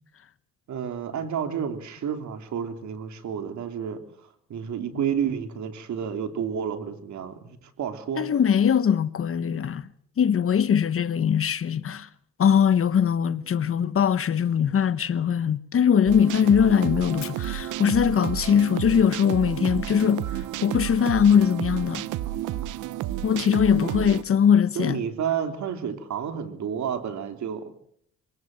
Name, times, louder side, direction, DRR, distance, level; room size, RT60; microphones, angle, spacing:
voice 1, 0.7-8.3 23.8-23.9 24.7-27.7, right 8 dB, 70° right, 3.3 m, -30 dB
voice 2, 8.2-9.9 10.2-12.1 12.4-22.1 23.2-25.0, left 8 dB, 45° left, 1.0 m, -21 dB
sound 1, 16.1-24.2, right 13 dB, 85° right, 0.9 m, -31 dB
Fire, 17.2-19.3, left 10 dB, 65° left, 4.4 m, -47 dB
25.0 x 18.5 x 7.7 m
cardioid pair, 90°, 30 cm